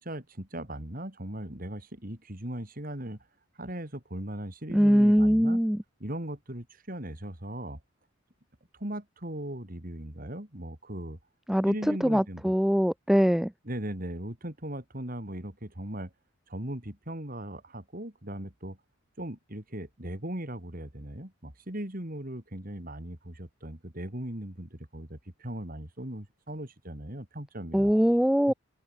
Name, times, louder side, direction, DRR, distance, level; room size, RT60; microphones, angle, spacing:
voice 1, 0.0-3.3 3.6-5.6 6.0-7.8 8.7-11.2 11.7-12.5 13.6-16.1 16.5-18.8 19.2-27.9 28.5-28.6, right 1 dB, 40° right, 3.3 m, -38 dB
voice 2, 4.7-5.8 11.5-13.5 27.7-28.5, equal, ahead, 0.4 m, -22 dB
open air
head